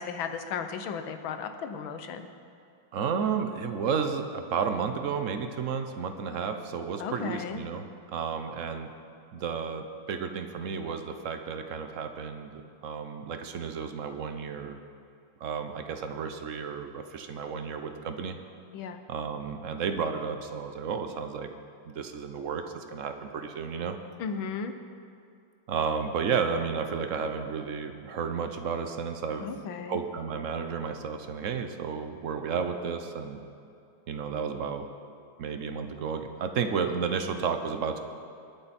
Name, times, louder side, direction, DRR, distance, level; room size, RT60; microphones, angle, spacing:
voice 1, 0.0-2.3 7.0-7.6 18.7-19.0 24.2-24.7 29.4-30.0, left 6 dB, 75° left, 8 dB, 1.6 m, -35 dB
voice 2, 2.9-8.9 9.3-14.8 15.4-18.4 19.1-21.5 21.9-24.0 25.7-29.5 29.9-33.4 34.1-34.9 35.4-38.0, right 6 dB, 60° right, 7 dB, 0.8 m, -32 dB
21.0 x 9.1 x 4.2 m, 2.5 s
omnidirectional pair, 2.2 m